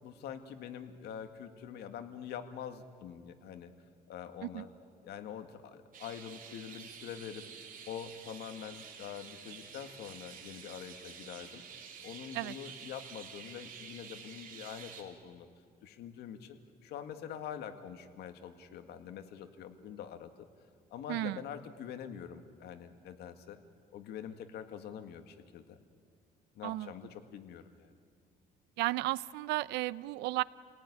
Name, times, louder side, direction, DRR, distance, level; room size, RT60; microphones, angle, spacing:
voice 1, 0.0-3.7 4.1-4.7 5.0-7.4 7.9-11.6 12.0-15.5 15.8-20.5 20.9-23.6 23.9-25.8 26.5-27.9, left 8 dB, 75° left, 8 dB, 2.0 m, -45 dB
sound 1, 5.9-15.0, right 7 dB, 55° right, 3.5 m, -49 dB
voice 2, 28.8-30.4, right 18 dB, 90° right, 19 dB, 0.6 m, -33 dB
29.0 x 18.0 x 9.9 m, 2.1 s
cardioid pair, 110°, 17 cm